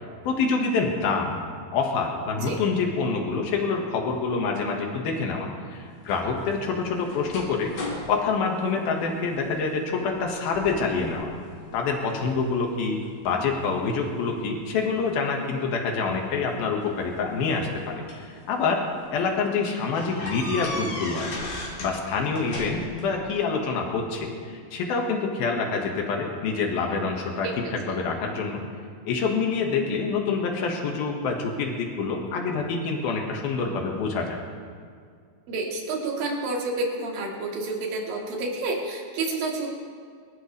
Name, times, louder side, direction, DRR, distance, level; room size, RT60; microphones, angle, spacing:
voice 1, 0.3-1.4 1.7-7.7 8.1-11.3 11.7-18.8 19.1-21.5 21.8-28.6 29.1-34.4, left 4 dB, 85° left, 1 dB, 3.5 m, -26 dB
sound 1, 6.0-9.5 9.9-10.3 10.5-11.2 11.7-12.4 13.0-14.4 15.6-15.7 16.9-18.3 18.9-19.0 19.3-19.4 19.9-22.0 22.2-23.1, left 1 dB, 60° left, 4.8 m, -37 dB
voice 2, 35.5-39.7, right 2 dB, 75° right, -1 dB, 3.8 m, -29 dB
25.0 x 13.5 x 3.4 m, 2.1 s
omnidirectional pair, 4.2 m